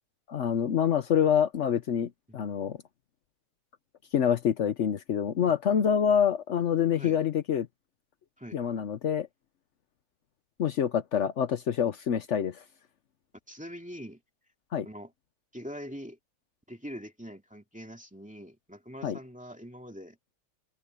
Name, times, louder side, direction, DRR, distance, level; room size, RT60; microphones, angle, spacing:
voice 1, 0.3-2.8 4.1-7.7 8.5-9.3 10.6-12.6 14.7-14.9 19.0-19.2, left 8 dB, 90° left, 0.6 m, -26 dB
voice 2, 13.5-14.2 14.8-15.1 15.5-16.2 16.7-20.2, equal, 5° right, 2.1 m, -43 dB
omnidirectional pair, 2.3 m